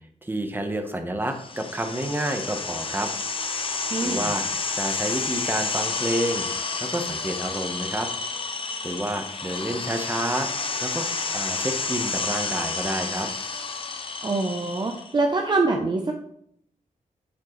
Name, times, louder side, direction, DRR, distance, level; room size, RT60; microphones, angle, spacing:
voice 1, 0.2-3.1 4.0-4.5 4.7-6.5 6.8-8.1 8.8-10.5 10.8-13.3, right 1 dB, 15° right, 5 dB, 1.1 m, -29 dB
sound 1, 1.4-15.1, left 4 dB, 40° left, 0.8 m, -30 dB
voice 2, 3.9-4.3 14.2-16.1, right 3 dB, 30° right, 3 dB, 0.8 m, -24 dB
8.8 x 7.4 x 3.2 m, 0.71 s
wide cardioid pair, 105°, 14 cm